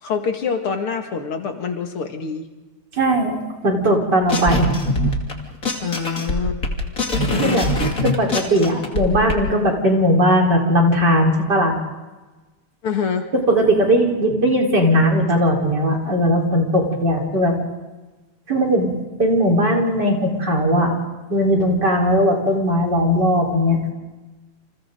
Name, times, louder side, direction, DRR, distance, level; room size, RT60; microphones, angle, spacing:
voice 1, 0.0-2.5 5.8-6.7 12.8-13.3, left 6 dB, 80° left, 4 dB, 2.9 m, -25 dB
voice 2, 2.9-3.3 3.6-4.7 7.4-7.7 8.0-11.8 13.5-17.6 18.5-20.9 21.3-23.9, equal, 50° right, 0 dB, 4.9 m, -18 dB
sound 1, 4.3-5.3 5.6-9.3, left 1 dB, 40° left, 3.1 m, -22 dB
30.0 x 27.5 x 3.9 m, 1.2 s
omnidirectional pair, 2.4 m